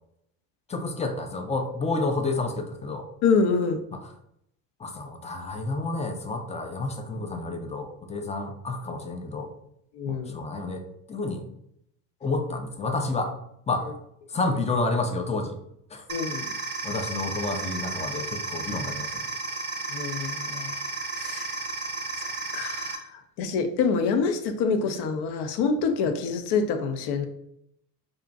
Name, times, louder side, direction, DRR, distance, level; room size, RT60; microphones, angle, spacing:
voice 1, 0.7-3.1 3.9-4.0 4.8-9.5 10.1-11.4 12.2-13.3 13.7-13.9 14.3-15.6 15.9-16.0 16.8-19.1, left 3 dB, 15° left, 4 dB, 0.4 m, -30 dB
voice 2, 3.2-3.8 9.9-10.4 16.1-16.5 19.9-20.8 21.1-21.6 22.2-27.3, left 5 dB, 60° left, 7 dB, 0.6 m, -26 dB
sound 1, 16.1-23.0, right 3 dB, 25° right, 0.6 m, -33 dB
2.5 x 2.1 x 3.8 m, 0.75 s
hypercardioid pair, 70°, 46 cm